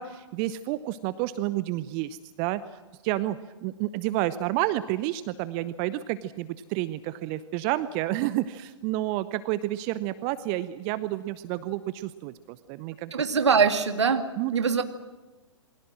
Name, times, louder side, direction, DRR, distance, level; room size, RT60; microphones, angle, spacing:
voice 1, 0.0-2.6 3.0-3.4 3.6-13.2 14.4-14.5, right 15 dB, 30° right, 15 dB, 0.8 m, -30 dB
voice 2, 13.1-14.3 14.5-14.8, right 6 dB, 65° right, 8 dB, 2.3 m, -22 dB
28.0 x 22.0 x 6.3 m, 1.2 s
figure-of-eight pair, 115°, 16 cm